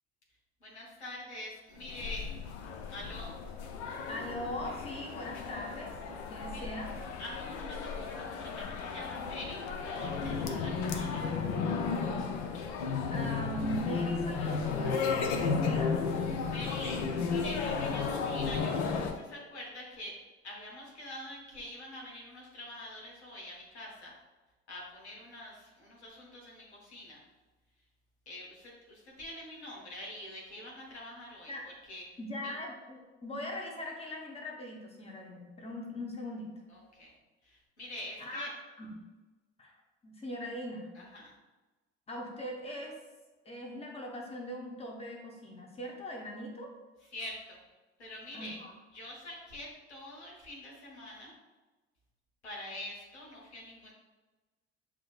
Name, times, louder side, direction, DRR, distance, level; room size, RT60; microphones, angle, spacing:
voice 1, 0.6-2.3 2.9-3.4 6.5-6.7 7.2-11.3 16.3-20.2 20.4-24.2 24.7-27.2 28.3-31.5 31.9-32.0 32.4-32.6 36.7-37.1 37.4-38.5 40.9-41.4 47.1-47.6 48.0-48.6 48.9-51.3 52.4-53.9, left 1 dB, 85° left, -3 dB, 1.0 m, -45 dB
sound 1, 1.8-19.1, left 5 dB, 55° left, 0.6 m, -34 dB
voice 2, 4.1-6.0 6.3-6.9 11.9-12.2 13.1-15.9 31.5-31.7 32.2-36.5 38.2-38.5 38.8-38.9 39.6-39.7 40.0-40.9 42.1-42.9 43.4-46.7 48.3-48.7, equal, 20° left, 0 dB, 1.1 m, -40 dB
7.3 x 2.8 x 2.4 m, 1.2 s
figure-of-eight pair, 60°, 33 cm